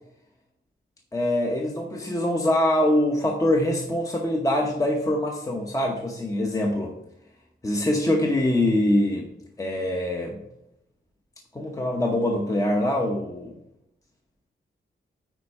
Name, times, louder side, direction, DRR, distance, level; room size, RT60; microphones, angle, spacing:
voice 1, 1.1-6.9 7.6-9.3 9.6-10.4 11.5-13.5, left 1 dB, 15° left, 1 dB, 0.9 m, -24 dB
9.2 x 4.3 x 5.4 m, 0.83 s
wide cardioid pair, 130°, 20 cm